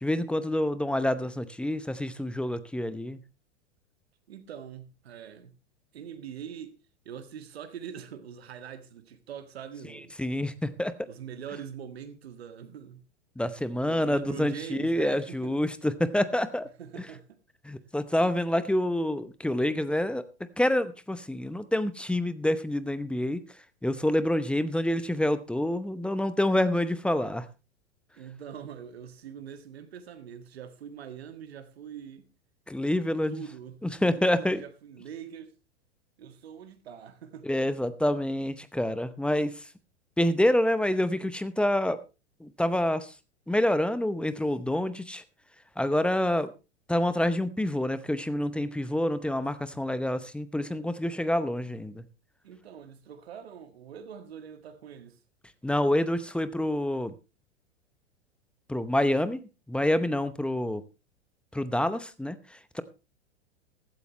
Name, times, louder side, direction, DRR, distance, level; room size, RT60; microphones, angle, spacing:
voice 1, 0.0-3.2 10.2-11.1 13.4-16.7 17.6-20.2 20.6-23.4 23.8-27.5 32.7-33.4 33.8-34.6 37.4-39.7 40.2-42.0 42.4-43.1 43.5-45.2 45.8-46.5 46.9-52.0 55.6-57.1 58.7-59.4 59.7-60.8 61.5-62.8, left 1 dB, 5° left, 0.8 m, -27 dB
voice 2, 4.3-5.5 5.9-6.8 7.1-10.1 11.1-13.0 13.8-15.5 16.8-17.4 28.1-32.3 33.3-35.5 36.2-37.5 52.4-55.2, right 8 dB, 65° right, 1.9 m, -43 dB
15.0 x 13.0 x 3.1 m
figure-of-eight pair, 95°, 34 cm